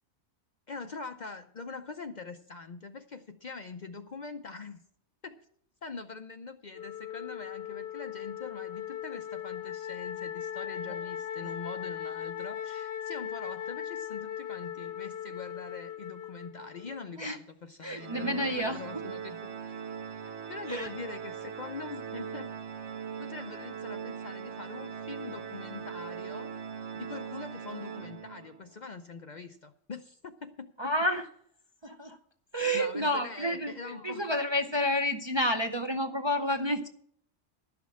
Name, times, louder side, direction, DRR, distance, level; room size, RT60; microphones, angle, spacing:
voice 1, 0.7-4.8 5.2-5.4 5.8-19.8 20.5-22.5 23.2-26.5 26.9-30.9 32.7-34.3, left 4 dB, 50° left, 7 dB, 0.6 m, -43 dB
Wind instrument woodwind instrument, 6.7-17.1, left 10 dB, 65° left, 1.1 m, -38 dB
voice 2, 17.8-18.8 20.7-20.9 30.8-31.3 31.8-32.2 32.5-36.9, equal, 30° right, 5 dB, 0.6 m, -30 dB
Organ, 18.0-28.7, right 7 dB, 65° right, 1.2 m, -40 dB
12.0 x 5.9 x 8.4 m, 0.65 s
omnidirectional pair, 1.2 m